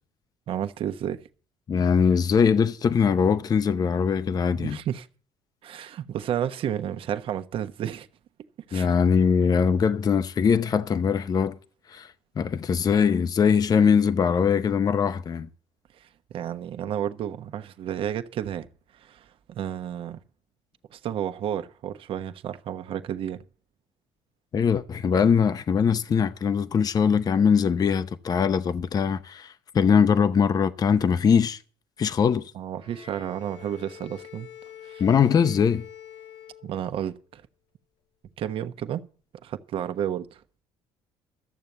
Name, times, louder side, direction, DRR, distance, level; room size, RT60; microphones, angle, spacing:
voice 1, 0.5-1.2 4.5-5.1 5.6-8.1 8.7-8.9 16.0-18.7 18.9-20.2 20.9-23.4 32.5-34.5 34.8-35.0 36.6-37.4 38.4-39.0 39.4-40.4, right 10 dB, 55° right, 1.1 m, -32 dB
voice 2, 1.7-4.8 8.7-11.6 11.9-12.1 12.4-15.5 24.5-31.6 32.0-32.4 35.0-35.8, left 6 dB, 35° left, 0.7 m, -22 dB
Bowed string instrument, 32.8-37.2, left 10 dB, 75° left, 3.2 m, -45 dB
13.5 x 7.0 x 7.9 m
cardioid pair, 95°, 11 cm